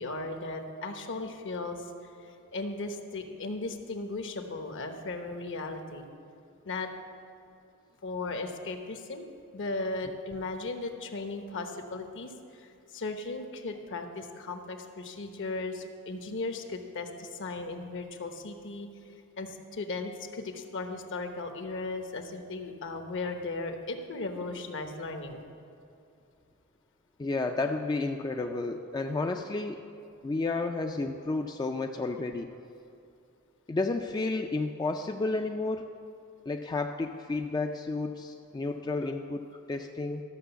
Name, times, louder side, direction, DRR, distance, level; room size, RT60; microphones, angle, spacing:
voice 1, 0.0-1.8 2.2-6.0 6.6-6.9 8.0-9.3 9.5-18.9 19.4-25.4, left 3 dB, 60° left, 6 dB, 0.9 m, -36 dB
voice 2, 27.2-29.8 30.2-32.5 33.7-35.8 36.5-40.2, left 3 dB, 20° left, 4 dB, 0.3 m, -31 dB
12.5 x 6.2 x 6.9 m, 2.6 s
head